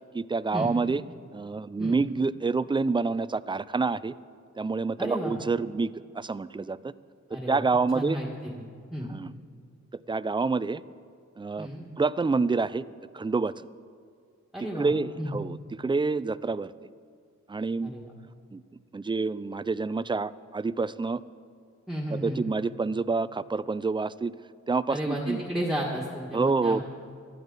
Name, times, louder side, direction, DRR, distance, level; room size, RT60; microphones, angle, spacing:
voice 1, 0.1-1.0 1.3-4.1 4.6-6.9 7.3-8.2 9.1-9.3 10.1-10.8 11.4-11.7 12.0-12.8 13.1-13.5 14.8-16.7 17.5-17.9 18.5-18.6 18.9-21.2 22.1-24.3 24.7-25.4 26.3-26.8, right 4 dB, 15° right, 17 dB, 0.3 m, -27 dB
voice 2, 5.0-5.4 7.3-7.6 7.9-8.3 8.5-8.6 8.9-9.1 11.6-11.8 14.5-14.9 15.2-15.3 17.8-18.1 21.9-22.4 24.9-26.8, equal, ahead, -3 dB, 1.7 m, -32 dB
18.5 x 13.5 x 4.0 m, 2.1 s
wide cardioid pair, 85°, 29 cm